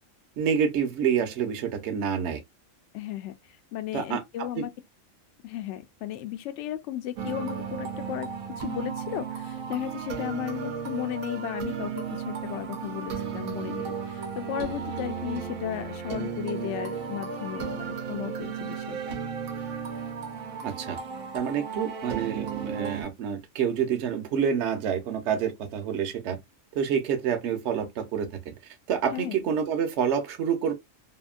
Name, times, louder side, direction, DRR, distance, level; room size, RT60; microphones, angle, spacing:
voice 1, 0.4-2.4 3.9-4.6 20.6-21.0 21.3-26.4 26.8-28.5 28.9-30.7, right 7 dB, 65° right, 0.9 m, -28 dB
voice 2, 2.9-3.3 3.7-4.7 5.4-8.3 8.6-19.2 29.1-29.4, left 12 dB, 65° left, 0.8 m, -35 dB
sound 1, 7.2-23.0, right 6 dB, 85° right, 1.1 m, -34 dB
2.8 x 2.6 x 2.4 m
omnidirectional pair, 1.4 m